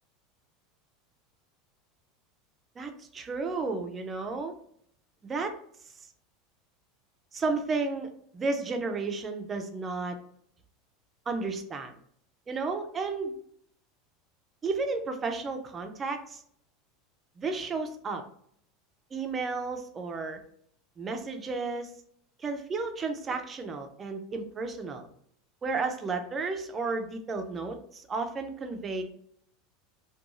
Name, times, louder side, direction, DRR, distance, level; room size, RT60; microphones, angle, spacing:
voice 1, 2.8-4.5 5.2-5.5 7.3-10.2 11.3-12.0 12.5-13.3 14.6-16.4 17.4-18.2 19.1-20.4 21.0-21.9 22.4-25.1 25.6-29.0, right 3 dB, 20° right, 6 dB, 0.3 m, -33 dB
2.4 x 2.2 x 2.9 m, 0.64 s
supercardioid pair, 160°, 0 cm